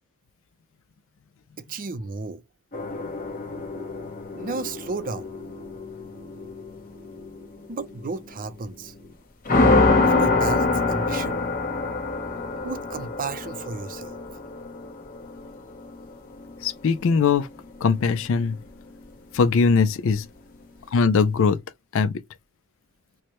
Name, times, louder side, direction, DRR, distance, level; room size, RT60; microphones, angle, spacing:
voice 1, 1.6-2.4 4.3-5.3 7.7-8.9 10.0-11.4 12.6-14.2, right 4 dB, 40° right, 0.5 m, -33 dB
sound 1, 2.7-9.1 9.5-17.2, left 3 dB, 40° left, 1.0 m, -26 dB
voice 2, 16.6-17.5 17.8-18.6 19.3-20.3 20.9-21.6 21.9-22.1, left 5 dB, 65° left, 0.4 m, -20 dB
4.6 x 2.1 x 2.9 m
head